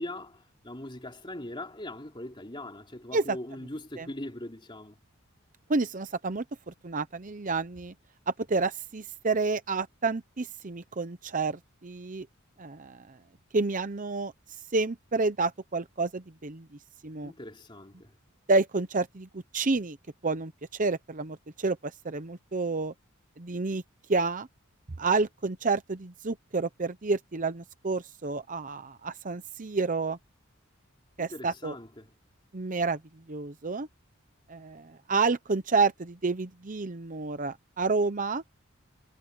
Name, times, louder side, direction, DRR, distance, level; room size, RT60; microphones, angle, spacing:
voice 1, 0.0-5.0 17.2-18.1 31.2-32.1, left 1 dB, 25° left, 3.4 m, -41 dB
voice 2, 5.7-7.9 8.3-12.3 12.6-13.2 13.5-14.3 14.7-16.7 17.0-17.3 18.5-20.0 20.2-22.9 23.4-23.8 24.1-24.5 25.0-30.2 31.2-31.8 32.5-33.0 33.3-33.9 34.5-38.4, right 3 dB, 40° right, 0.8 m, -29 dB
head